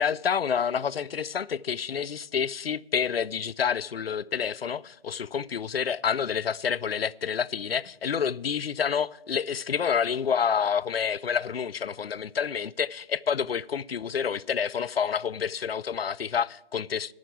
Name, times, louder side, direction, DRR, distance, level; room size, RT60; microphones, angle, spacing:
voice 1, 0.0-17.1, left 7 dB, 85° left, 0.5 m, -28 dB
10.5 x 6.4 x 8.3 m
figure-of-eight pair, 145°, 29 cm